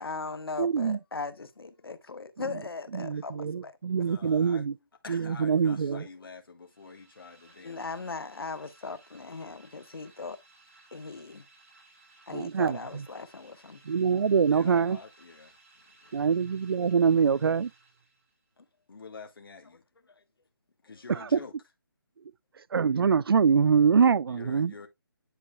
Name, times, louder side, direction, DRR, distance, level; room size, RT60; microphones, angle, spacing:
voice 1, 0.0-3.8 4.2-4.3 7.6-10.4 10.9-11.4 12.3-13.8, left 4 dB, 85° left, 1.2 m, -38 dB
voice 2, 0.6-1.0 2.9-4.7 5.1-6.0 12.3-13.0 13.9-15.0 16.1-17.7 21.1-21.4 22.7-24.7, right 6 dB, 80° right, 0.4 m, -24 dB
voice 3, 3.9-4.6 5.0-7.9 14.4-16.3 18.9-19.8 20.8-21.5 24.3-24.9, left 4 dB, 70° left, 1.7 m, -47 dB
sound 1, 6.6-18.5, right 3 dB, 40° right, 3.0 m, -59 dB
10.0 x 4.7 x 2.3 m
hypercardioid pair, 170°, 12 cm